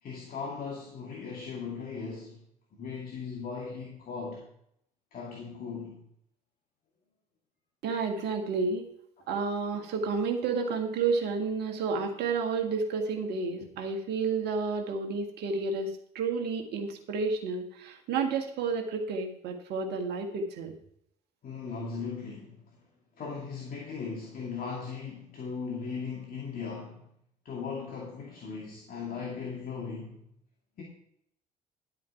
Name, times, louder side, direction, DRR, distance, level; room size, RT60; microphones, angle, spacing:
voice 1, 0.0-2.4 2.8-4.4 5.1-6.0 21.4-22.7 23.2-27.1 27.4-30.3 30.8-30.9, left 5 dB, 45° left, -2 dB, 2.3 m, -38 dB
voice 2, 7.8-8.9 9.3-20.7, right 4 dB, 55° right, 3 dB, 1.7 m, -31 dB
11.0 x 8.3 x 4.5 m, 0.73 s
figure-of-eight pair, 55°, 21 cm